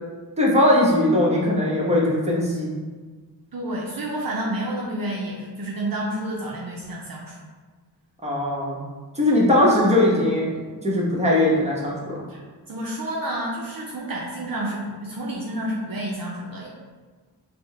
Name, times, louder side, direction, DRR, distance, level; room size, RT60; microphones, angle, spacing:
voice 1, 0.4-2.8 8.2-8.8 9.1-12.2, left 1 dB, 15° right, -4 dB, 0.9 m, -20 dB
voice 2, 3.5-7.4 12.3-12.4 12.7-16.7, right 1 dB, 55° right, -3 dB, 0.6 m, -29 dB
4.3 x 2.1 x 3.2 m, 1.4 s
wide cardioid pair, 55°, 41 cm